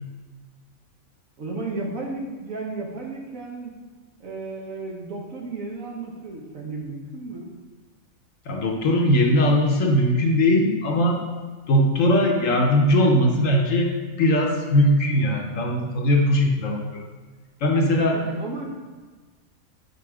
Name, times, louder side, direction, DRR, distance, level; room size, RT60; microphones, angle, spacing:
voice 1, 1.4-3.7 4.2-7.5 18.1-18.7, right 3 dB, 65° right, 0 dB, 1.4 m, -33 dB
voice 2, 8.5-11.2 11.7-13.9 14.2-17.0 17.6-18.2, left 1 dB, 65° left, 1 dB, 1.2 m, -20 dB
5.5 x 4.0 x 4.9 m, 1.4 s
omnidirectional pair, 1.6 m